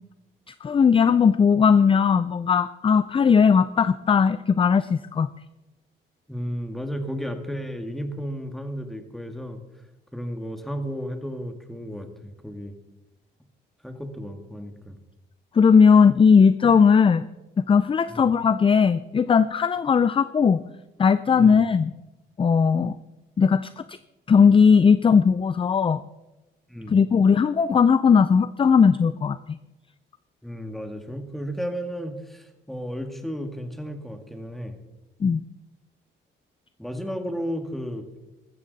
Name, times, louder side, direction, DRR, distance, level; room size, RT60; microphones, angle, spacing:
voice 1, 0.6-5.3 15.5-17.2 17.6-20.6 21.0-21.9 22.4-22.9 23.4-24.0 24.3-26.0 26.9-29.6 35.2-35.4, left 6 dB, 25° left, 15 dB, 0.4 m, -18 dB
voice 2, 6.3-9.6 10.1-12.7 13.8-15.0 18.1-18.2 21.3-21.6 26.7-27.0 30.4-34.8 36.8-38.0, equal, ahead, 6 dB, 1.9 m, -33 dB
14.5 x 13.5 x 4.1 m, 1.1 s
cardioid pair, 90°, 20 cm